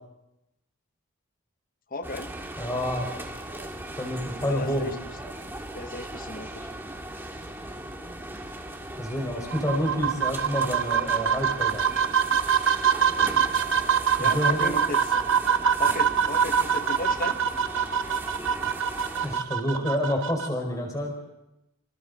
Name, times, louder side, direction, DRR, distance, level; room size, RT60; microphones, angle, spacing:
voice 1, 1.9-2.3 4.4-5.0 5.7-6.7 14.2-15.2 15.8-17.4, left 2 dB, 40° left, 11 dB, 0.9 m, -35 dB
sound 1, 2.0-19.4, right 1 dB, 10° right, 1.8 m, -38 dB
voice 2, 2.6-3.1 4.0-4.9 8.9-11.8 14.2-14.8 19.2-21.1, equal, 15° left, 2 dB, 4.7 m, -28 dB
sound 2, 9.5-20.5, right 7 dB, 60° right, 0.9 m, -24 dB
27.5 x 27.0 x 4.0 m, 0.92 s
head